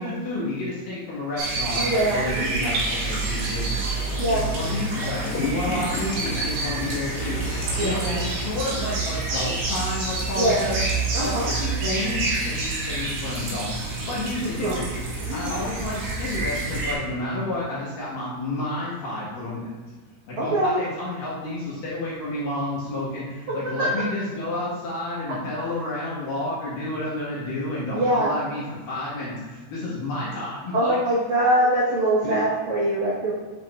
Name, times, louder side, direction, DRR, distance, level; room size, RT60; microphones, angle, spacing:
voice 1, 0.0-10.9 11.2-13.7 14.1-14.9 15.3-19.7 20.3-31.0 32.2-32.4, left 2 dB, 60° left, -8 dB, 2.5 m, -30 dB
sound 1, 1.4-16.9, right 3 dB, 55° right, 3.2 m, -28 dB
voice 2, 1.8-2.6 4.2-4.4 7.8-8.2 10.4-10.6 11.1-11.5 14.6-14.8 15.4-15.5 20.4-20.8 27.9-28.3 30.7-33.3, right 1 dB, 80° right, -8 dB, 1.6 m, -23 dB
sound 2, 2.8-9.5, left 3 dB, 90° left, 4.0 m, -35 dB
8.6 x 7.9 x 2.5 m, 1.4 s
omnidirectional pair, 5.7 m